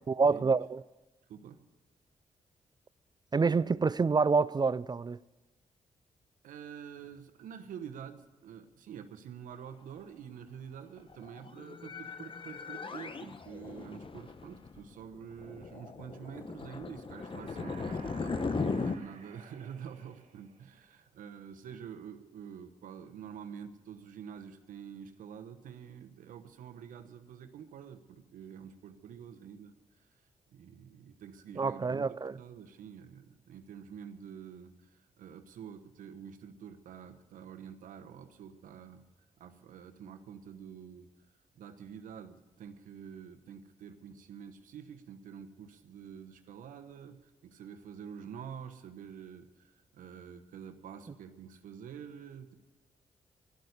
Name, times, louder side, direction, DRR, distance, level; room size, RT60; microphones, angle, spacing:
voice 1, 0.1-0.8 3.3-5.2 31.6-32.4, right 4 dB, 30° right, 0.4 m, -27 dB
voice 2, 1.3-1.6 6.4-29.7 30.5-39.0 39.4-41.1 41.5-52.5, right 8 dB, 80° right, 1.1 m, -47 dB
sound 1, 11.1-19.0, left 4 dB, 40° left, 1.0 m, -38 dB
sound 2, 17.1-20.9, right 5 dB, 60° right, 2.1 m, -55 dB
12.0 x 12.0 x 8.1 m
supercardioid pair, 50°, 14 cm